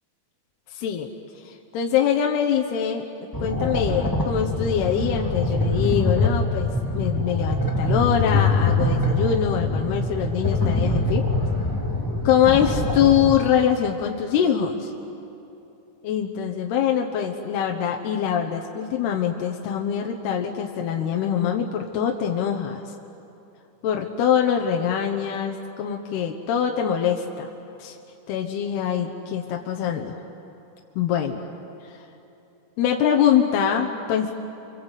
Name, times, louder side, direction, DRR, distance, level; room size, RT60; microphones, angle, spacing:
voice 1, 0.7-1.1 1.4-3.0 3.4-11.2 12.2-14.9 16.0-22.8 23.8-27.5 27.8-28.0 28.3-30.2 31.0-31.4 32.8-34.3, left 8 dB, 70° left, 2 dB, 2.9 m, -23 dB
sound 1, 3.3-13.3, left 2 dB, 20° left, 0.5 m, -24 dB
29.5 x 24.5 x 8.2 m, 2.9 s
omnidirectional pair, 5.2 m